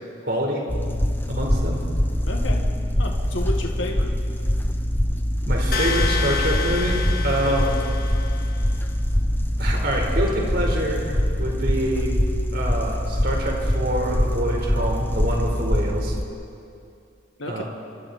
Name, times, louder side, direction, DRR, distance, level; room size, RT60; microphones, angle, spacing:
voice 1, 0.2-0.6 1.3-1.8 5.5-7.7 9.6-12.1 12.5-16.1 17.4-17.6, right 1 dB, 55° right, 0 dB, 4.5 m, -26 dB
sound 1, 0.7-16.2, equal, 10° left, 0.8 m, -23 dB
voice 2, 2.3-2.7 3.0-4.2 7.4-7.6 17.4-17.6, left 1 dB, 75° left, 2 dB, 1.9 m, -31 dB
sound 2, 5.7-8.6, left 5 dB, 50° left, 1.7 m, -29 dB
28.0 x 25.0 x 4.4 m, 2.5 s
head